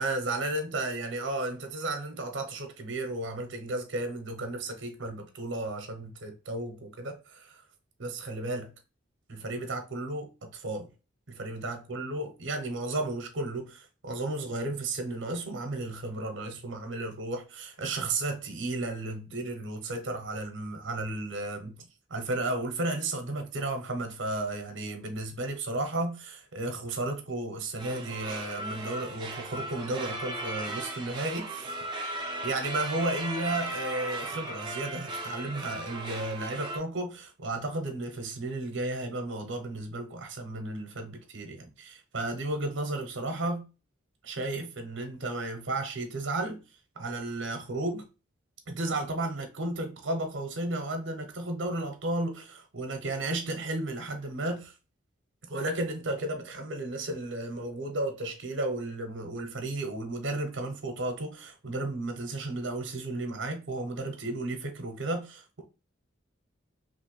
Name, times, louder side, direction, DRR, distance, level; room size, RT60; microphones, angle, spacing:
voice 1, 0.0-7.6 8.0-8.7 9.3-10.9 11.3-21.8 22.1-31.8 32.4-43.7 44.2-46.6 47.0-48.0 48.7-54.7 55.4-65.6, right 2 dB, 70° right, 0.7 m, -33 dB
sound 1, 27.8-36.8, right 2 dB, 25° right, 0.5 m, -37 dB
3.1 x 2.5 x 3.0 m
head